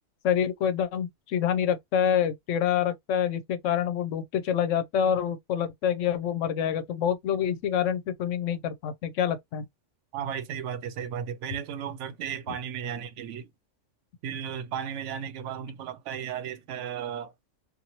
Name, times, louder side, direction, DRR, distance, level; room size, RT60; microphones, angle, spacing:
voice 1, 0.2-9.7 12.5-12.6, left 9 dB, 90° left, 0.9 m, -27 dB
voice 2, 10.1-13.5 14.2-17.3, right 8 dB, 80° right, 0.9 m, -34 dB
2.7 x 2.5 x 2.8 m
omnidirectional pair, 1.3 m